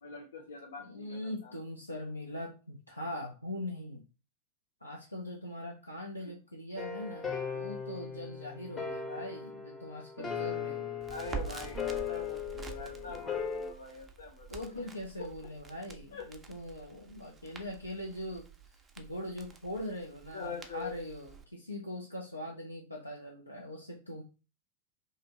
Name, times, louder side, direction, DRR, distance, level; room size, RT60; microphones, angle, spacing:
voice 1, 0.0-1.5 6.2-6.3 11.1-14.8 15.2-15.3 16.1-16.3 20.3-20.9, left 5 dB, 65° left, 3 dB, 0.8 m, -44 dB
voice 2, 0.8-4.0 4.8-10.9 14.5-18.5 19.0-24.2, left 1 dB, 85° left, -1 dB, 0.4 m, -41 dB
sound 1, 6.8-13.7, left 7 dB, 15° left, 0.7 m, -38 dB
Crackle, 11.0-21.4, right 6 dB, 20° right, 0.4 m, -47 dB
2.6 x 2.4 x 2.9 m, 0.31 s
figure-of-eight pair, 90°, 0 cm